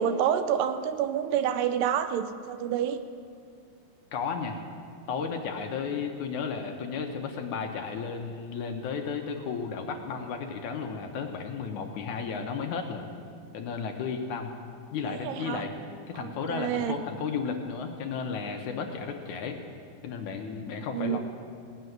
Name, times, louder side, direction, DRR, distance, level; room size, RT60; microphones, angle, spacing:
voice 1, 0.0-3.0 15.1-15.6 16.1-17.0 20.9-21.2, right 9 dB, 80° right, 10 dB, 2.2 m, -28 dB
voice 2, 4.1-4.6 5.1-13.1 13.5-14.5 14.9-15.7 16.1-19.6 20.0-21.2, left 5 dB, 70° left, 3 dB, 2.2 m, -33 dB
18.0 x 6.8 x 9.4 m, 2.4 s
omnidirectional pair, 4.0 m